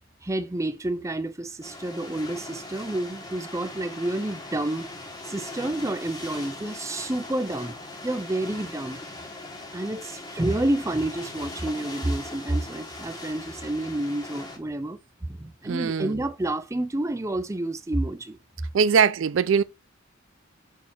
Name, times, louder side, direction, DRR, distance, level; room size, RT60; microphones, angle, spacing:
voice 1, 0.2-4.9 5.3-7.8 8.0-9.0 9.7-18.4, right 1 dB, 15° right, 0.5 m, -29 dB
sound 1, 1.6-14.6, left 2 dB, 20° left, 1.4 m, -40 dB
voice 2, 15.7-16.1 18.7-19.6, right 6 dB, 70° right, 0.4 m, -21 dB
6.4 x 2.8 x 5.6 m
head